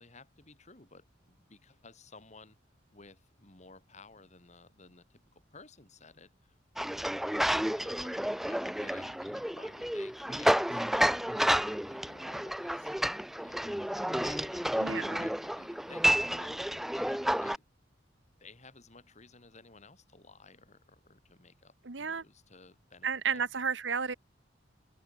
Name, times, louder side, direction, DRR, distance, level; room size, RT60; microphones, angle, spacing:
voice 1, 0.0-2.6 2.9-6.5 7.3-12.9 13.2-17.6 18.4-23.5, left 3 dB, 35° left, 3.4 m, -56 dB
sound 1, 6.8-17.6, equal, ahead, 0.3 m, -30 dB
voice 2, 14.8-15.3 21.8-22.2 23.0-24.1, right 6 dB, 70° right, 1.4 m, -32 dB
head